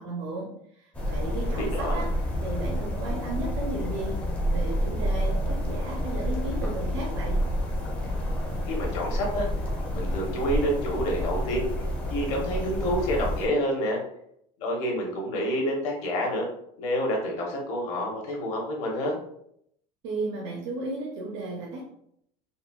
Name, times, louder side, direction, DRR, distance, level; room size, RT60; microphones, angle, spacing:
voice 1, 0.0-2.1 2.4-4.2 4.5-7.4 20.0-21.9, right 2 dB, 55° right, -3 dB, 0.6 m, -34 dB
sound 1, 0.9-13.5, equal, 10° left, 0.4 m, -29 dB
voice 2, 1.4-2.0 8.7-9.5 9.9-11.7 12.0-14.0 14.6-16.4 16.8-19.2, equal, 50° left, 0 dB, 0.8 m, -28 dB
3.8 x 2.0 x 2.3 m, 0.72 s
cardioid pair, 175°, 15 cm